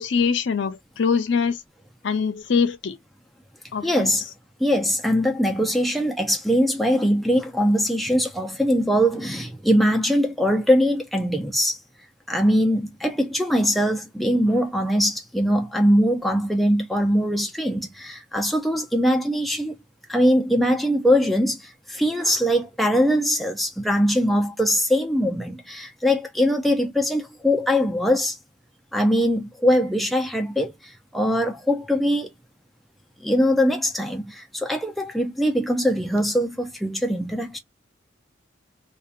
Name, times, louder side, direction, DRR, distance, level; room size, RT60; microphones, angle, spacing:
voice 1, 0.0-1.6 2.0-3.0 3.7-4.1, left 5 dB, 65° left, 0.5 m, -23 dB
voice 2, 3.8-4.2 4.6-11.8 12.3-19.7 20.1-28.4 28.9-32.3 33.2-37.6, equal, ahead, 0.3 m, -22 dB
2.7 x 2.2 x 2.3 m
head